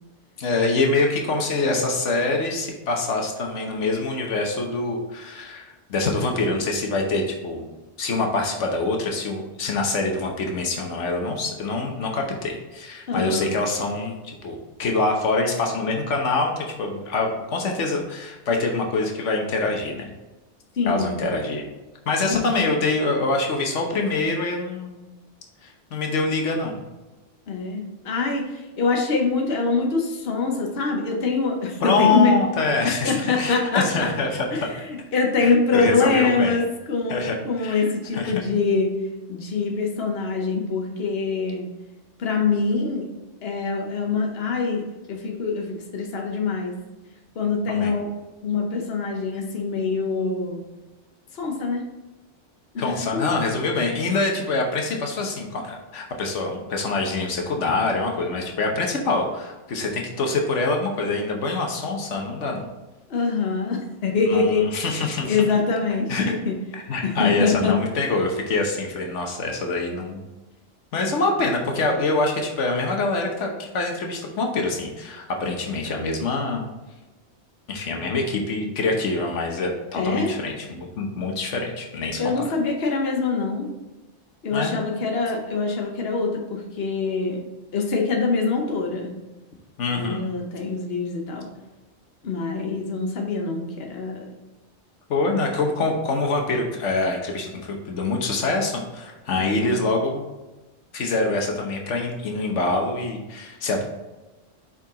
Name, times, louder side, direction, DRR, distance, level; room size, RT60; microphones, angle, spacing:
voice 1, 0.4-7.7 8.0-20.1 20.9-21.6 22.1-25.0 25.6-26.8 31.8-34.7 35.4-36.6 37.1-38.3 47.7-47.9 52.8-62.7 64.3-65.4 66.1-66.4 66.7-70.2 70.9-76.6 77.7-82.3 84.5-84.8 89.8-90.2 95.1-100.2 100.9-103.8, left 3 dB, 85° left, 2 dB, 1.2 m, -25 dB
voice 2, 13.1-13.5 20.8-21.2 22.2-22.7 27.5-32.3 32.8-34.1 34.5-38.9 39.3-41.7 42.2-43.0 43.4-44.8 45.1-46.7 47.3-48.1 48.4-50.6 51.3-51.8 52.7-53.4 63.1-64.6 65.2-66.5 67.0-67.8 79.9-80.3 82.2-83.7 84.4-87.4 87.7-89.1 89.9-91.5 92.2-94.3 99.4-99.8, left 4 dB, 60° left, 1 dB, 1.2 m, -24 dB
5.5 x 5.0 x 3.8 m, 1.1 s
omnidirectional pair, 1.2 m